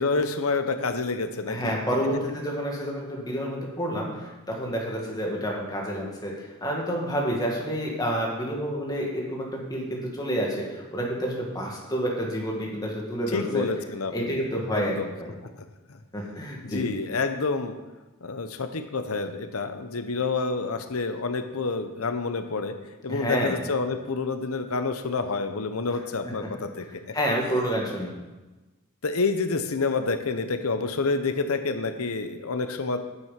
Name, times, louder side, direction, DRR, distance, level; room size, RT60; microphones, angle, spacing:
voice 1, 0.0-1.8 13.3-14.4 14.7-15.1 16.6-17.8 18.2-22.7 23.0-26.8 29.0-33.0, left 4 dB, 85° left, 8 dB, 0.8 m, -28 dB
voice 2, 1.5-6.3 6.6-13.6 14.1-15.3 16.1-16.8 23.1-23.6 26.4-26.5 26.8-26.9 27.1-28.1, equal, 20° left, -2 dB, 2.1 m, -29 dB
9.6 x 7.6 x 5.9 m, 1.2 s
head